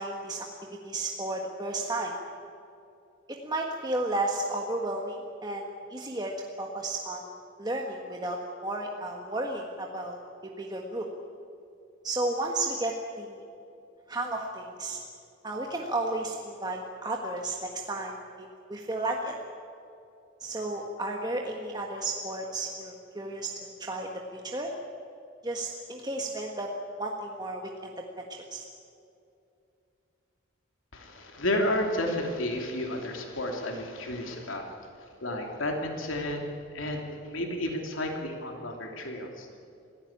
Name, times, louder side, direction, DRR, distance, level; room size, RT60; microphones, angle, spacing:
voice 1, 0.0-2.1 3.3-6.3 6.6-7.3 7.6-11.1 12.0-13.4 14.1-15.0 15.4-19.3 20.4-24.7 25.4-26.7 27.0-28.7, right 2 dB, 20° right, 0 dB, 1.6 m, -33 dB
voice 2, 30.9-34.7 35.2-39.5, left 1 dB, 80° left, 2 dB, 2.9 m, -32 dB
27.0 x 16.0 x 8.8 m, 2.7 s
head